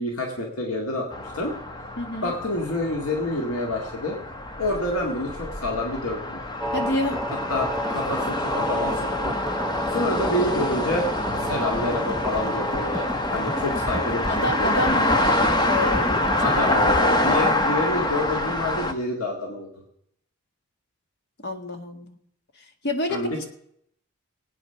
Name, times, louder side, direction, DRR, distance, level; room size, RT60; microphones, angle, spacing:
voice 1, 0.0-1.6 2.2-4.2 4.6-6.4 7.5-9.4 9.9-11.1 11.4-13.1 13.3-15.1 16.4-19.7 23.1-23.5, left 1 dB, 85° left, 0 dB, 2.0 m, -28 dB
sound 1, 1.1-18.9, left 1 dB, 20° left, 0.9 m, -26 dB
voice 2, 2.0-2.3 6.7-7.2 14.3-16.6 21.4-22.2 22.5-23.5, left 1 dB, 50° left, 6 dB, 1.6 m, -29 dB
sound 2, 6.6-17.0, equal, ahead, 0.5 m, -31 dB
19.5 x 8.8 x 5.7 m, 0.72 s
head